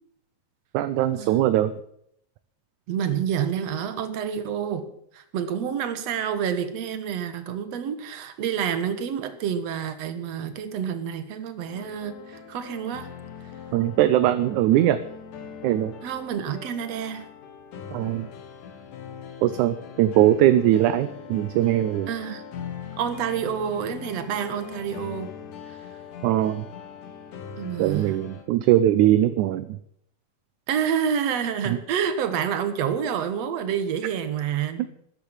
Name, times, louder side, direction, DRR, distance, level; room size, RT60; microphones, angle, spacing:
voice 1, 0.7-1.7 13.7-15.0 15.6-15.9 17.9-18.3 19.4-22.1 26.2-26.7 27.8-29.8 31.7-31.8, right 13 dB, 75° right, 12 dB, 2.0 m, -21 dB
voice 2, 2.9-4.9 5.1-13.1 16.0-17.3 22.1-22.4 23.0-25.3 27.6-28.2 30.7-34.9, right 8 dB, 55° right, 10 dB, 2.3 m, -28 dB
sound 1, 11.7-28.4, left 7 dB, 65° left, 3.2 m, -41 dB
13.5 x 10.5 x 8.8 m, 0.69 s
omnidirectional pair, 3.9 m